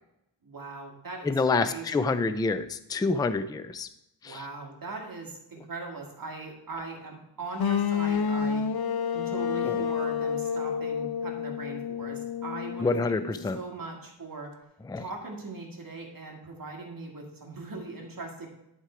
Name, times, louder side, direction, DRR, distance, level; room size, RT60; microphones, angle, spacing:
voice 1, 0.4-2.2 4.2-8.7 9.1-14.5 15.0-18.5, right 3 dB, 45° right, 0 dB, 1.9 m, -40 dB
voice 2, 1.2-3.9 4.2-4.4 9.6-9.8 12.8-13.6 14.9-15.0, left 3 dB, 10° left, 12 dB, 0.3 m, -27 dB
sound 1, 7.6-13.5, left 7 dB, 55° left, 0.7 m, -29 dB
11.0 x 4.4 x 4.9 m, 0.86 s
wide cardioid pair, 120°, 45 cm